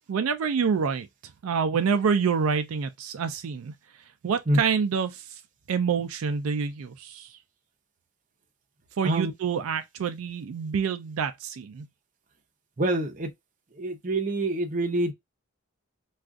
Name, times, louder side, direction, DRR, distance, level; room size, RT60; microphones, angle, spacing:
voice 1, 0.1-1.1 1.4-3.7 4.2-5.4 5.7-7.4 9.0-11.9, right 6 dB, 85° right, 0.4 m, -27 dB
voice 2, 12.8-13.3 13.8-15.1, right 1 dB, 40° right, 0.6 m, -26 dB
2.4 x 2.4 x 3.5 m
head